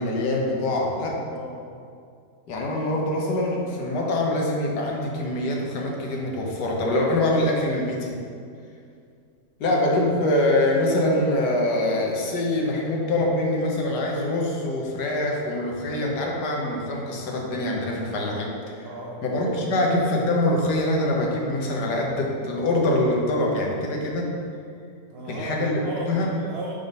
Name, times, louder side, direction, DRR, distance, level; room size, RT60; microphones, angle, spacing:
voice 1, 0.0-1.2 2.5-8.2 9.6-18.8 19.2-24.3 25.3-25.8 26.1-26.3, left 1 dB, 85° left, -1 dB, 1.5 m, -24 dB
voice 2, 1.3-1.7 9.7-9.9 18.8-19.9 25.1-26.7, right 2 dB, 75° right, -2 dB, 0.5 m, -35 dB
5.4 x 3.6 x 5.3 m, 2.3 s
omnidirectional pair, 1.7 m